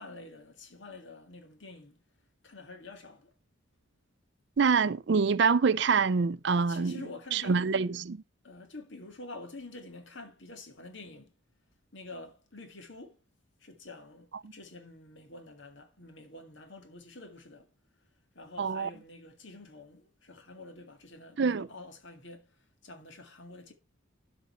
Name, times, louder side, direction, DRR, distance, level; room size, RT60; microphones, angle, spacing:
voice 1, 0.0-2.0 2.4-3.3 6.5-7.7 8.4-11.3 11.9-13.2 13.6-17.7 18.4-22.5 22.8-23.7, left 2 dB, 65° left, 1.9 m, -48 dB
voice 2, 4.6-7.0 7.3-8.2 18.6-18.9 21.4-21.7, right 5 dB, 55° right, 0.4 m, -26 dB
12.0 x 5.3 x 4.4 m
head